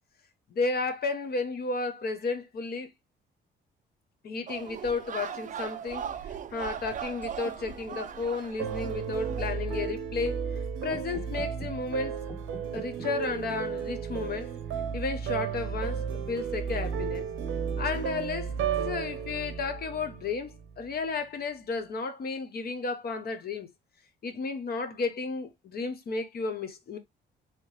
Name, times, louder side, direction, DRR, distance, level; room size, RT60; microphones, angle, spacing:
voice 1, 0.5-2.9 4.2-10.4 10.8-12.2 12.7-14.5 14.9-17.3 17.8-23.7 24.2-27.0, left 4 dB, 50° left, 0.8 m, -33 dB
sound 1, 4.5-9.5, right 8 dB, 40° right, 0.4 m, -39 dB
sound 2, 7.2-15.1, left 1 dB, 10° left, 0.9 m, -50 dB
sound 3, 8.6-20.7, right 7 dB, 90° right, 0.8 m, -33 dB
3.3 x 2.8 x 3.0 m
cardioid pair, 90°, 20 cm